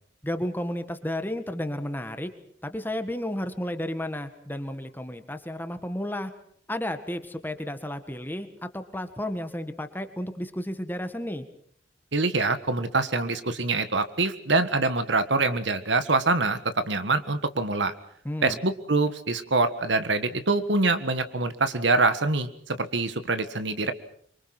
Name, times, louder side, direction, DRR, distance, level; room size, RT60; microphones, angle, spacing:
voice 1, 0.2-2.3 2.6-6.3 6.7-11.4 18.2-18.6, left 1 dB, 10° left, 8 dB, 1.6 m, -32 dB
voice 2, 12.1-17.9 18.4-23.9, right 3 dB, 70° right, 10 dB, 1.6 m, -25 dB
26.0 x 24.0 x 6.1 m, 0.63 s
head